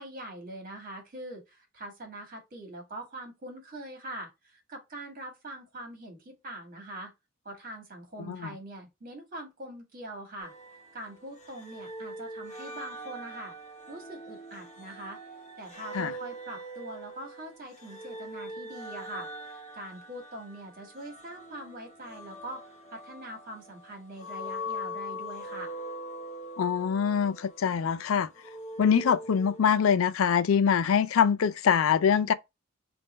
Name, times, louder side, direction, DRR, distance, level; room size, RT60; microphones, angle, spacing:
voice 1, 0.0-7.1 7.5-10.5 10.9-13.5 13.9-15.2 15.6-25.8, right 1 dB, 45° right, 1.6 m, -43 dB
sound 1, 10.4-29.6, equal, 35° left, 0.8 m, -42 dB
voice 2, 26.6-28.3 28.8-32.3, left 7 dB, 80° left, 0.4 m, -24 dB
3.6 x 2.6 x 4.2 m
head